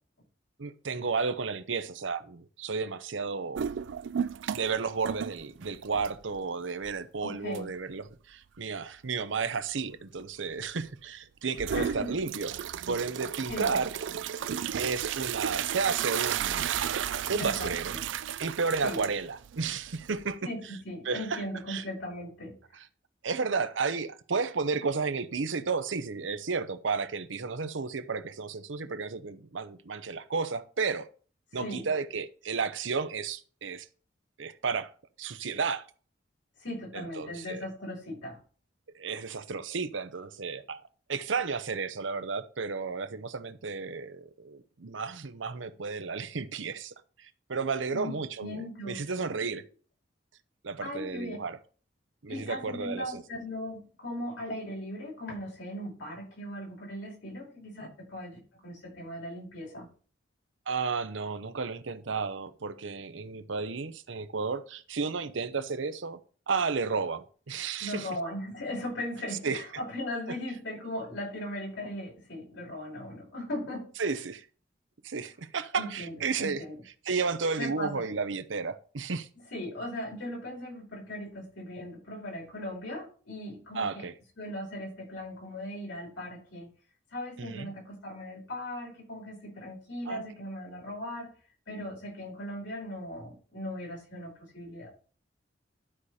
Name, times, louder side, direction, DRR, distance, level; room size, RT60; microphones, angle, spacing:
voice 1, 0.6-3.7 4.5-12.5 12.9-13.9 14.7-16.7 17.3-17.9 18.4-20.4 21.0-21.8 23.2-31.1 31.5-33.9 34.4-34.9 35.2-35.8 36.9-37.6 38.9-40.8 41.1-49.6 50.6-51.6 52.2-53.2 60.7-66.2 66.5-68.1 69.4-69.6 74.0-74.4 75.0-76.6 77.1-79.3 83.7-84.1 87.4-87.7 90.1-90.2, right 4 dB, 90° right, 0.8 m, -32 dB
sound 1, 3.6-4.8 5.0-6.4 6.8-6.9 7.5-7.6 11.6-20.3, right 9 dB, 75° right, 0.4 m, -34 dB
voice 2, 7.2-7.7 11.7-12.1 13.5-13.8 17.3-18.0 18.8-19.0 20.4-22.6 31.6-31.9 36.6-38.4 47.9-49.1 50.8-51.4 52.3-59.9 67.8-73.9 75.7-76.7 77.6-78.0 79.5-84.1 84.4-86.7 87.1-91.3 91.7-94.9, left 1 dB, 80° left, 5.2 m, -38 dB
12.0 x 4.9 x 4.2 m
head